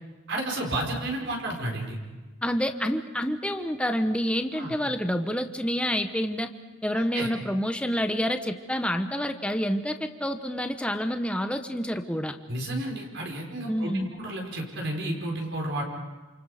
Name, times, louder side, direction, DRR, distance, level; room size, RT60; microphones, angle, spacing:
voice 1, 0.3-2.0 4.5-4.7 6.9-7.3 12.5-15.8, right 1 dB, 60° right, 0 dB, 4.9 m, -32 dB
voice 2, 2.4-6.5 6.8-12.4 13.7-14.1, equal, 5° left, 6 dB, 1.1 m, -28 dB
29.5 x 28.0 x 5.1 m, 1.2 s
head